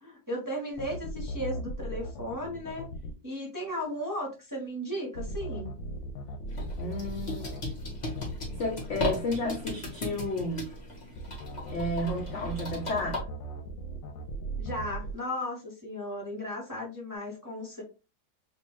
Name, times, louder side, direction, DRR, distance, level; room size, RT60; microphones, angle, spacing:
voice 1, 0.0-2.9 3.2-5.7 14.6-17.8, equal, 20° right, 0.6 m, -35 dB
sound 1, 0.7-3.1 5.2-9.1 11.2-15.1, right 1 dB, 90° left, 1.3 m, -38 dB
sound 2, 6.5-13.2, left 1 dB, 30° left, 1.1 m, -36 dB
voice 2, 6.8-7.6 8.6-10.7 11.7-13.2, left 1 dB, 75° left, 0.6 m, -32 dB
3.6 x 2.5 x 3.0 m
omnidirectional pair, 2.0 m